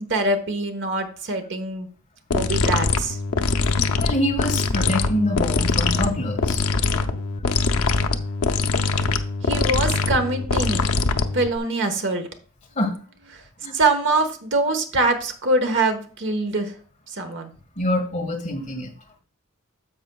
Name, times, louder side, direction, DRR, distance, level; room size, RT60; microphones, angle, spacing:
voice 1, 0.0-1.9 2.3-3.2 9.4-10.9 11.3-12.3 13.3-13.4 13.7-16.7 17.1-17.5, right 2 dB, 55° right, 6 dB, 1.2 m, -23 dB
sound 1, 2.3-11.6, left 4 dB, 80° left, 0.6 m, -22 dB
voice 2, 3.7-6.6 12.7-13.0 13.6-13.7 17.8-18.9, left 1 dB, 35° left, 2 dB, 1.6 m, -25 dB
10.0 x 7.4 x 2.3 m, 0.43 s
head